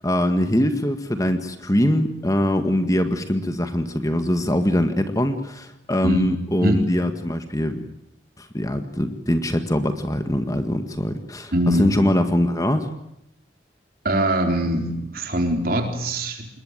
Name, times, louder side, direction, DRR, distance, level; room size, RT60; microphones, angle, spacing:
voice 1, 0.0-7.8 8.4-12.9, equal, 20° left, 8 dB, 1.8 m, -22 dB
voice 2, 11.5-11.9 14.0-16.5, right 1 dB, 55° right, 4 dB, 4.1 m, -22 dB
27.5 x 21.0 x 9.1 m, 0.80 s
head